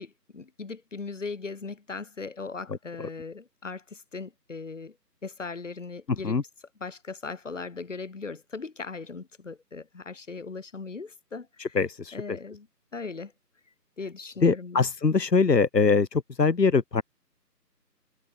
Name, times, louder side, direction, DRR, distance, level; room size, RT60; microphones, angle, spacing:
voice 1, 0.0-5.0 5.2-6.4 6.8-11.8 12.1-12.7 12.9-13.3 14.0-14.9, left 4 dB, 45° left, 7.3 m, -38 dB
voice 2, 11.6-12.4 14.4-17.0, left 4 dB, 75° left, 1.5 m, -23 dB
figure-of-eight pair, 160°, 49 cm